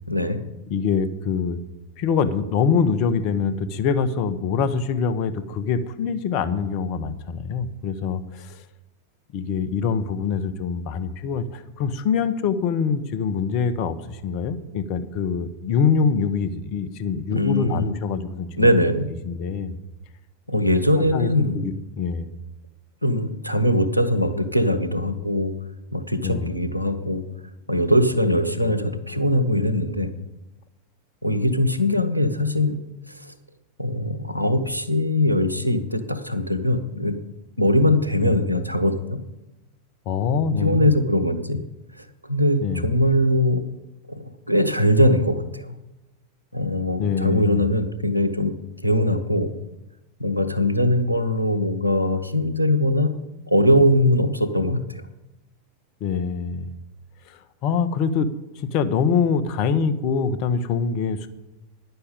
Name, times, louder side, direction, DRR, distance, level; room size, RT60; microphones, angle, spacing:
voice 1, 0.1-0.4 17.3-17.9 18.6-19.1 20.5-21.7 23.0-25.5 25.9-27.2 27.7-30.1 31.2-32.8 33.1-33.3 33.8-37.2 37.6-39.2 40.6-41.6 42.0-43.6 44.1-45.8 46.5-48.5 48.8-49.5 50.2-53.1 53.5-54.8, left 1 dB, 90° left, 8 dB, 0.9 m, -21 dB
voice 2, 0.7-1.6 2.0-8.6 9.3-18.7 19.2-19.7 20.5-20.6 21.0-22.3 26.2-26.5 38.2-38.3 40.1-40.9 42.6-42.8 47.0-47.6 56.0-56.7 57.3-58.3 58.5-61.3, left 6 dB, 40° left, 12 dB, 0.9 m, -24 dB
9.9 x 6.8 x 8.4 m, 0.96 s
figure-of-eight pair, 90°, 0 cm